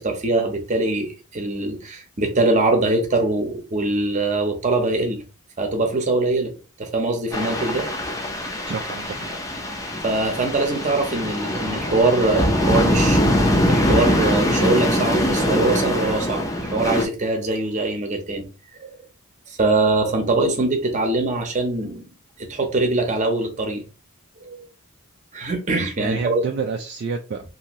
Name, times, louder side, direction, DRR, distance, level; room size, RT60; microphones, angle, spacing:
voice 1, 0.0-5.2 5.6-6.5 6.8-7.9 10.0-13.4 13.7-18.5 18.8-19.0 19.5-22.0 22.4-23.8 24.4-24.7 25.3-26.5, right 2 dB, 35° right, 0.7 m, -22 dB
sound 1, 7.3-17.1, equal, 15° left, 0.5 m, -22 dB
voice 2, 8.7-9.6 26.0-27.4, right 5 dB, 50° right, 0.3 m, -29 dB
2.7 x 2.6 x 3.0 m
head